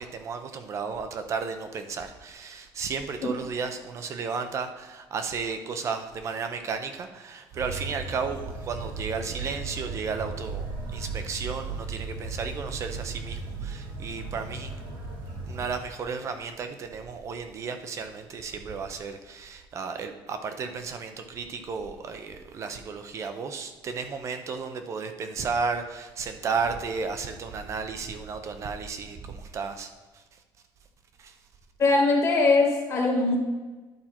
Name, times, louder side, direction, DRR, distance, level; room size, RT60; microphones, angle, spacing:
voice 1, 0.0-14.8 15.5-30.2 31.2-31.4, right 5 dB, 35° right, 8 dB, 0.6 m, -33 dB
sound 1, 7.5-15.7, right 4 dB, 70° right, 1.5 m, -36 dB
voice 2, 31.8-33.4, left 3 dB, 35° left, 1 dB, 1.4 m, -21 dB
11.0 x 4.4 x 4.4 m, 1.3 s
cardioid pair, 180°, 9 cm